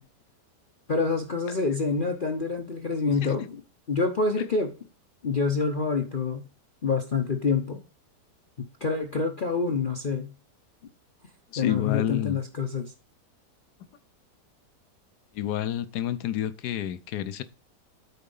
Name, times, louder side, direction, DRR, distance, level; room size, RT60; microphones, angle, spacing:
voice 1, 0.9-3.6 3.9-4.7 5.2-6.5 6.8-7.8 8.6-10.3 11.6-12.9, left 4 dB, 40° left, 0.8 m, -27 dB
voice 2, 11.5-12.4 15.3-17.4, left 12 dB, 70° left, 1.2 m, -29 dB
8.7 x 4.3 x 5.4 m
omnidirectional pair, 1.8 m